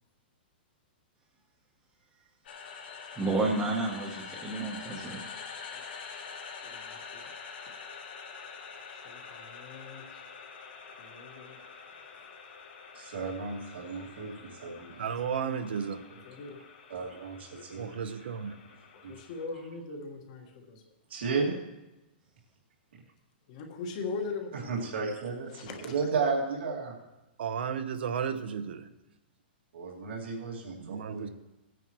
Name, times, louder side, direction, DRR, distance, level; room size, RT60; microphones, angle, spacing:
sound 1, 2.4-19.4, left 5 dB, 65° left, 2.4 m, -46 dB
voice 1, 3.2-5.2, right 2 dB, 10° right, -3 dB, 1.0 m, -30 dB
voice 2, 6.6-7.3 8.9-10.0 11.0-11.6 15.3-15.7 16.2-16.6 19.1-20.9 23.5-24.8 25.5-25.9, left 4 dB, 35° left, 3 dB, 1.5 m, -41 dB
voice 3, 12.9-15.1 16.9-17.9 19.0-19.1 21.1-21.6 24.7-26.9 29.7-31.3, right 4 dB, 90° right, -2 dB, 2.3 m, -33 dB
voice 4, 15.0-16.0 17.7-18.6 27.4-28.9 30.8-31.3, right 7 dB, 70° right, 9 dB, 0.9 m, -33 dB
18.0 x 9.3 x 3.1 m, 1.0 s
hypercardioid pair, 175°, 6 cm